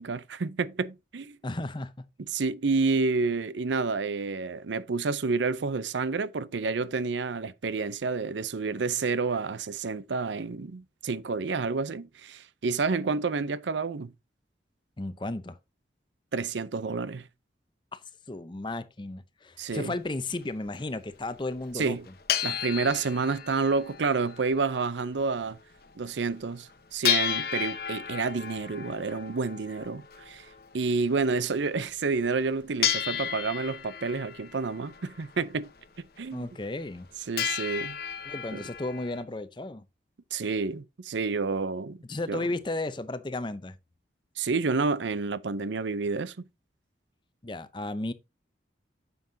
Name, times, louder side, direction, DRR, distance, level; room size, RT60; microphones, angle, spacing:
voice 1, 0.0-1.4 2.3-14.1 16.3-17.3 19.6-19.9 21.7-22.0 22.4-25.6 26.0-30.5 30.7-35.7 36.2-36.5 37.3-38.0 38.5-38.6 40.3-42.0 42.3-42.4 44.4-46.5, right 4 dB, 85° right, 0.6 m, -29 dB
voice 2, 1.4-1.9 15.0-15.6 17.9-18.0 18.3-22.0 36.3-37.1 38.3-39.9 42.1-43.8 47.4-48.1, left 2 dB, 25° left, 0.7 m, -34 dB
sound 1, 19.7-19.8 20.4-20.5 20.7-20.8 21.6-21.7 21.9-25.0 25.3-25.4 25.8-25.9 26.3-26.4 27.0-31.6 32.2-32.4 32.8-35.8 36.2-36.3 36.6-37.1 37.4-39.2, left 9 dB, 55° left, 0.9 m, -33 dB
9.4 x 7.0 x 2.7 m
head